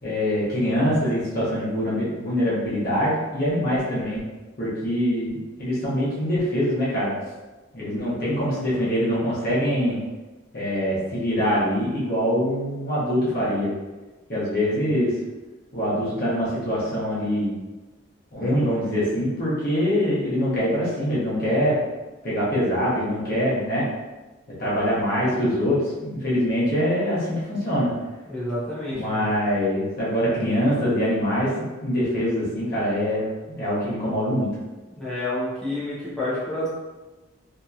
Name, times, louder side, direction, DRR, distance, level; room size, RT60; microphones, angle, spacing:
voice 1, 0.0-4.2 4.6-5.3 5.6-7.1 7.7-10.0 10.5-13.7 14.3-15.1 15.7-17.5 18.3-21.8 22.2-23.9 24.6-27.9 28.9-33.3 33.6-34.5, equal, 50° left, -8 dB, 1.0 m, -24 dB
voice 2, 28.3-29.3 34.9-36.7, left 1 dB, 5° left, -11 dB, 0.7 m, -29 dB
2.8 x 2.8 x 2.4 m, 1.2 s
head